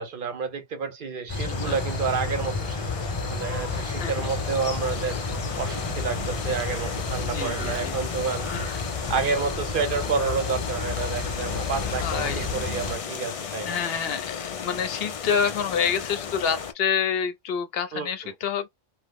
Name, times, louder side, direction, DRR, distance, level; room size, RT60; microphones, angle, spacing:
voice 1, 0.0-5.2 5.6-8.5 9.1-13.8 17.9-18.3, right 5 dB, 60° right, 0.8 m, -30 dB
sound 1, 1.3-13.0, left 3 dB, 30° left, 0.8 m, -31 dB
voice 2, 1.4-1.8 4.0-4.1 7.1-8.0 8.5-8.6 11.9-12.5 13.6-18.7, left 7 dB, 75° left, 0.8 m, -28 dB
sound 2, 1.5-16.7, left 7 dB, 50° left, 0.4 m, -35 dB
3.0 x 2.0 x 3.4 m
omnidirectional pair, 1.0 m